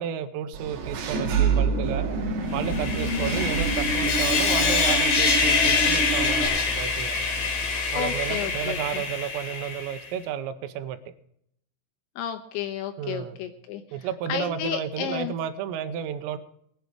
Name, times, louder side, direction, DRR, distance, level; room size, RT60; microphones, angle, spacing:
voice 1, 0.0-2.1 2.5-7.2 7.9-11.0 13.0-13.4 13.9-16.4, right 8 dB, 80° right, 11 dB, 3.4 m, -32 dB
Engine / Mechanisms, 0.5-6.5, right 5 dB, 60° right, 3.5 m, -27 dB
Sawing, 2.6-10.0, left 4 dB, 50° left, 3.4 m, -25 dB
voice 2, 3.0-3.4 8.0-9.0 12.2-15.3, left 10 dB, 80° left, 7 dB, 2.8 m, -33 dB
20.5 x 8.0 x 4.9 m, 0.70 s
omnidirectional pair, 5.9 m